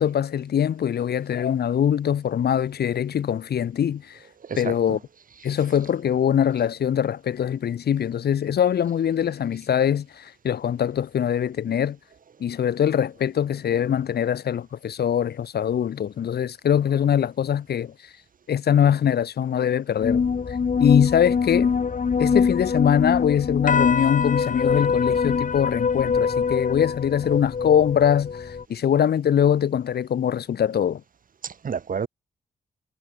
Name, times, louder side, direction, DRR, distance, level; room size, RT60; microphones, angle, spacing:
voice 1, 0.0-4.2 4.6-5.0 5.4-12.0 12.4-17.9 18.5-20.2 20.8-21.7 22.2-31.0, left 9 dB, 65° left, 1.7 m, -22 dB
voice 2, 4.4-5.0 31.4-32.1, right 6 dB, 50° right, 1.3 m, -30 dB
sound 1, 20.0-28.6, left 6 dB, 45° left, 1.6 m, -23 dB
hypercardioid pair, 40°, 18 cm